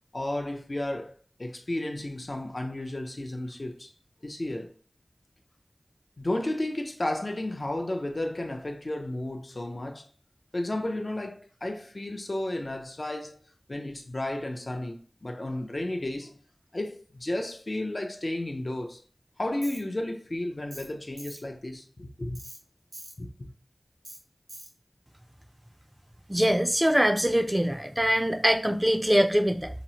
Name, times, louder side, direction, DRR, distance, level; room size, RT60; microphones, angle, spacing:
voice 1, 0.1-1.1 1.4-3.9 4.2-4.7 6.2-10.1 10.5-13.4 13.7-16.3 16.7-19.0 19.4-22.4 23.2-23.5, left 1 dB, 60° left, 0.4 m, -33 dB
Tools, 19.6-19.8 20.7-20.9 21.2-21.4 22.3-22.6 22.9-23.1 24.0-24.2 24.5-24.7, right 1 dB, 85° right, 1.0 m, -43 dB
voice 2, 26.3-29.7, equal, 20° right, 0.3 m, -23 dB
2.8 x 2.0 x 2.8 m
wide cardioid pair, 40°, 0 cm